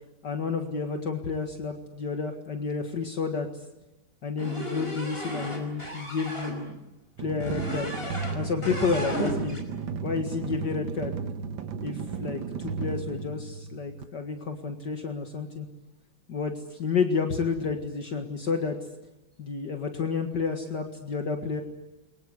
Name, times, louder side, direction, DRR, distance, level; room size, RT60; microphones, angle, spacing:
voice 1, 0.2-3.5 4.2-6.8 7.2-7.9 8.3-9.6 10.0-11.3 11.8-15.7 16.3-18.8 19.4-21.6, left 5 dB, 55° left, 4 dB, 2.4 m, -30 dB
sound 1, 4.4-6.6 7.4-8.4 8.6-9.6, equal, 25° left, 5.5 m, -34 dB
sound 2, 7.2-14.0, right 5 dB, 70° right, 2.0 m, -34 dB
29.5 x 24.0 x 8.1 m, 0.97 s
omnidirectional pair, 2.2 m